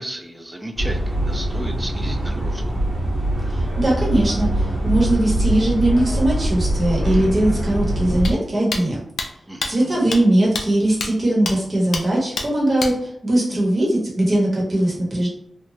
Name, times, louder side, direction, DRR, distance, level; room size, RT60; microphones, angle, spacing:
voice 1, 0.0-2.6 9.5-10.1, right 1 dB, 15° right, 3 dB, 0.5 m, -33 dB
sound 1, 0.8-8.3, right 1 dB, 85° right, 1.3 m, -23 dB
voice 2, 3.5-9.0 9.7-12.9 13.2-15.3, right 1 dB, 40° right, -4 dB, 1.1 m, -20 dB
sound 2, 8.2-8.3 8.7-8.8 9.2-9.3 9.6-9.7 10.1-10.2 10.5-10.6 11.0-11.1 11.5-11.6 11.9-12.0 12.4-12.5 12.8-12.9, left 3 dB, 90° left, 0.4 m, -25 dB
3.0 x 2.2 x 2.7 m, 0.70 s
wide cardioid pair, 85°, 0 cm